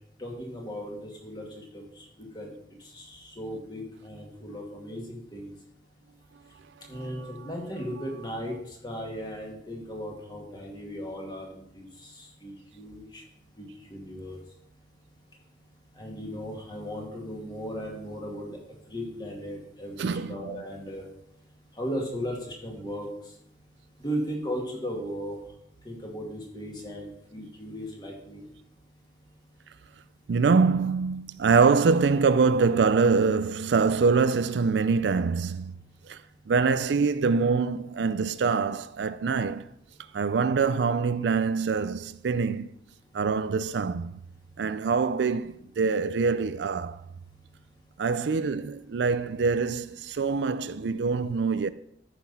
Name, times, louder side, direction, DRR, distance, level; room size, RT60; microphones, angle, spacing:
voice 1, 0.2-2.5 2.8-5.5 6.9-13.2 13.6-14.4 16.0-18.6 18.9-21.0 21.8-23.1 24.0-25.4 25.8-28.5, equal, 25° left, 2.2 m, -37 dB
voice 2, 6.9-7.3 20.0-20.3 30.3-35.7 36.1-36.2 36.5-39.7 40.1-42.7 43.1-44.2 44.6-47.0 48.0-51.7, right 5 dB, 75° right, 0.4 m, -24 dB
13.5 x 5.8 x 4.2 m
head